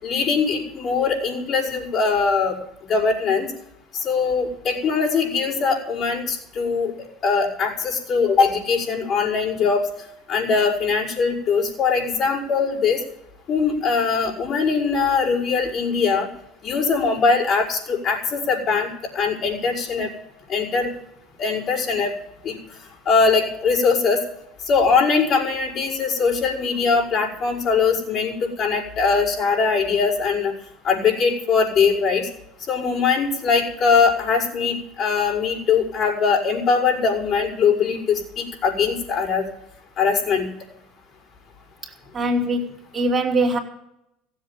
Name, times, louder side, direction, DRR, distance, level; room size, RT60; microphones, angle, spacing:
voice 1, 0.0-2.6 2.8-3.5 3.9-6.9 7.2-9.8 10.3-13.0 13.5-16.3 16.6-18.9 19.1-20.1 20.5-20.9 21.4-22.1 22.4-22.5 23.1-24.2 24.7-30.5 30.8-32.2 32.7-39.4 40.0-40.5, left 5 dB, 50° left, -5 dB, 5.5 m, -21 dB
voice 2, 42.1-43.6, right 1 dB, 35° right, 0 dB, 2.9 m, -22 dB
16.0 x 7.9 x 7.4 m, 0.81 s
hypercardioid pair, 75°, 0 cm